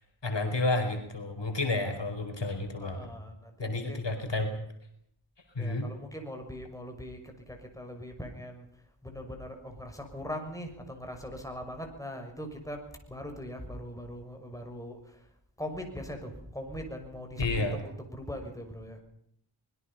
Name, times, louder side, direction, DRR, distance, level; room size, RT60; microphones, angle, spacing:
voice 1, 0.2-3.1 3.6-4.5 5.5-5.9 17.4-17.8, left 2 dB, 65° left, 5 dB, 4.8 m, -30 dB
voice 2, 2.8-4.0 5.6-8.7 9.0-12.8 13.1-15.2 15.6-19.0, equal, 5° left, 3 dB, 6.3 m, -40 dB
25.0 x 21.5 x 5.7 m, 0.70 s
wide cardioid pair, 80°, 47 cm